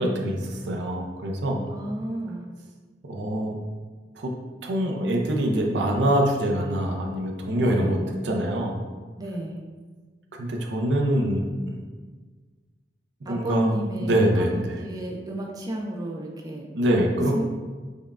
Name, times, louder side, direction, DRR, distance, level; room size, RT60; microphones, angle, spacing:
voice 1, 0.0-1.6 3.0-3.6 4.2-4.3 4.6-8.0 8.2-8.7 10.3-11.8 13.3-13.7 14.0-14.8 16.7-17.4, right 1 dB, 85° right, 1 dB, 0.5 m, -24 dB
voice 2, 1.7-2.4 7.6-8.0 9.2-9.6 13.3-16.7 17.3-17.4, right 1 dB, 20° right, 0 dB, 0.3 m, -32 dB
5.2 x 2.2 x 2.4 m, 1.4 s
head